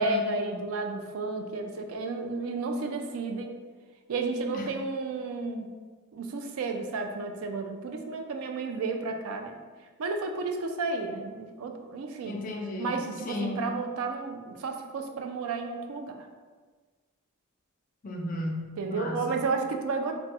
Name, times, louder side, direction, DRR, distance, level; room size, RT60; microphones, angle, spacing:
voice 1, 0.0-3.5 4.1-5.7 6.1-9.5 10.0-12.4 12.8-16.3 18.8-20.1, right 3 dB, 70° right, 4 dB, 0.3 m, -32 dB
voice 2, 12.2-13.6 18.0-19.5, left 1 dB, 35° left, 1 dB, 0.3 m, -35 dB
3.1 x 2.2 x 2.7 m, 1.4 s
head